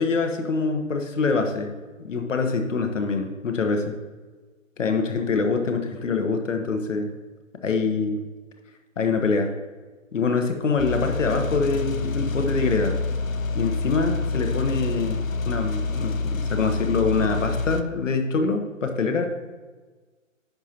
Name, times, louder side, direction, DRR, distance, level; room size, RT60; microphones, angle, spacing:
voice 1, 0.0-3.9 4.8-7.1 7.6-8.2 9.0-9.5 10.1-13.0 13.5-19.3, left 4 dB, 65° left, 5 dB, 1.3 m, -25 dB
sound 1, 10.8-17.8, left 3 dB, 85° left, 0.7 m, -27 dB
10.5 x 5.5 x 3.0 m, 1.3 s
figure-of-eight pair, 145°, 40 cm